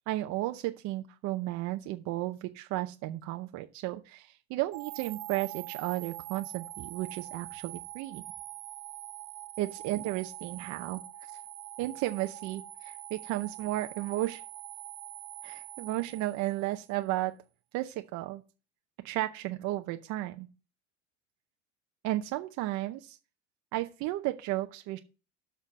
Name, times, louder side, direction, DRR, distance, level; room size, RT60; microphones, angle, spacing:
voice 1, 0.1-8.2 9.6-11.0 11.8-14.4 15.4-17.4 17.7-18.4 19.0-20.5 22.0-23.2 23.7-25.0, right 16 dB, 50° right, 7 dB, 0.7 m, -33 dB
sound 1, 4.7-16.9, right 18 dB, 65° right, 1.1 m, -44 dB
6.7 x 5.8 x 6.2 m, 0.35 s
supercardioid pair, 125°, 38 cm